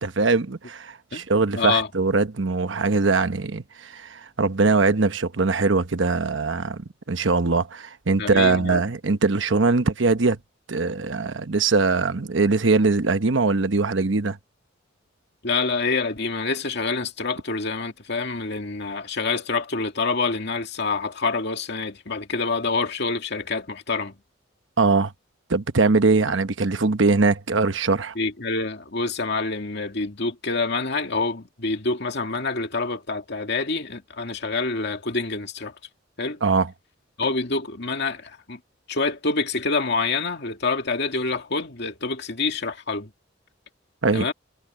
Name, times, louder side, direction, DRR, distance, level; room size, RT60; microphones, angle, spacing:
voice 1, 0.0-10.4 10.7-14.4 24.8-25.1 25.5-28.1 36.4-36.7 44.0-44.3, right 3 dB, 70° right, 1.0 m, -21 dB
voice 2, 1.5-1.9 8.2-8.8 15.4-24.2 28.2-35.7 36.2-36.4 37.2-38.6 38.9-43.1 44.1-44.3, left 3 dB, 60° left, 2.3 m, -26 dB
head